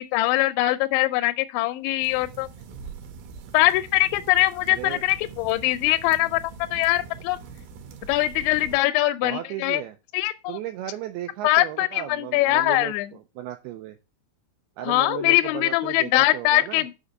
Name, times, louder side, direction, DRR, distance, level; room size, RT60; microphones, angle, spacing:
voice 1, 0.0-2.5 3.5-6.4 6.7-7.4 8.1-9.8 10.1-10.6 11.4-13.1 14.9-16.9, left 17 dB, 85° left, 2.8 m, -22 dB
sound 1, 2.0-8.8, right 6 dB, 70° right, 2.6 m, -43 dB
voice 2, 4.7-5.0 9.2-10.0 10.5-14.0 14.8-16.8, right 12 dB, 90° right, 2.3 m, -35 dB
6.4 x 5.0 x 6.4 m
omnidirectional pair, 5.2 m